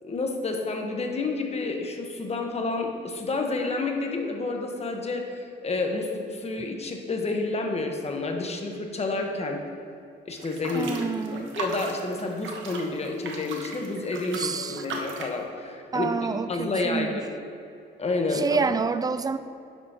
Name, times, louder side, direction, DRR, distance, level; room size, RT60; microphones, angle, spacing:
voice 1, 0.0-9.6 10.3-10.9 11.3-16.1 16.5-17.3 18.0-18.6, left 3 dB, 30° left, 2 dB, 1.2 m, -29 dB
sound 1, 10.4-15.4, right 3 dB, 75° right, 1.1 m, -37 dB
voice 2, 10.7-11.5 14.3-14.9 15.9-17.2 18.3-19.4, right 4 dB, 20° right, 12 dB, 0.4 m, -28 dB
10.0 x 6.8 x 2.9 m, 2.5 s
cardioid pair, 90°, 20 cm